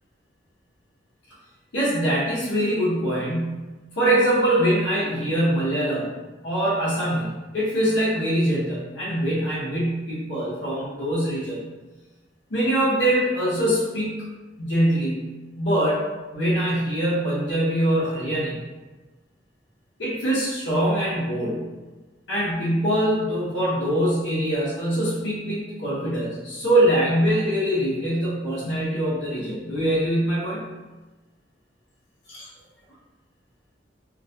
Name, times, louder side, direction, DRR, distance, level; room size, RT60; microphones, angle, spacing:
voice 1, 1.7-6.1 6.4-11.6 12.5-14.2 14.6-15.2 15.6-16.0 16.3-18.6 20.0-21.6 22.3-30.6 32.3-32.5, right 1 dB, 85° left, -7 dB, 0.6 m, -23 dB
2.2 x 2.1 x 2.6 m, 1.2 s
head